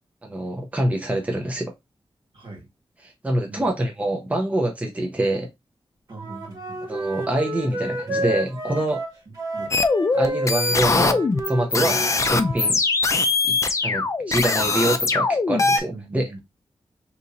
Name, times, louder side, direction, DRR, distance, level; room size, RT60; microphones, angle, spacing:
voice 1, 0.2-1.7 3.0-5.5 6.9-9.0 10.1-11.2 11.5-12.0 12.3-12.8 13.4-13.6 13.8-16.4, right 1 dB, 15° right, 0.7 m, -25 dB
voice 2, 2.3-2.7 3.5-3.8 6.1-6.8 9.3-9.7 11.8-12.0 15.9-16.4, right 2 dB, 60° right, 1.5 m, -40 dB
Wind instrument woodwind instrument, 6.1-12.7, right 1 dB, 40° right, 1.6 m, -30 dB
sound 1, 9.7-15.8, left 3 dB, 35° left, 0.4 m, -21 dB
2.8 x 2.7 x 3.8 m
wide cardioid pair, 150°, 10 cm